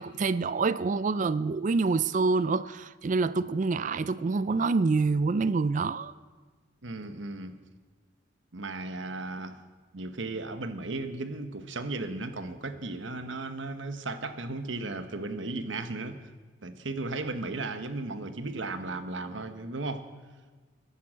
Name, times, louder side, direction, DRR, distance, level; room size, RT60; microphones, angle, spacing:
voice 1, 0.0-6.1, right 4 dB, 40° right, 16 dB, 0.4 m, -26 dB
voice 2, 6.8-7.5 8.5-9.6 9.9-16.2 16.6-20.0, right 2 dB, 75° right, 9 dB, 1.1 m, -35 dB
14.5 x 11.0 x 7.5 m, 1.4 s
head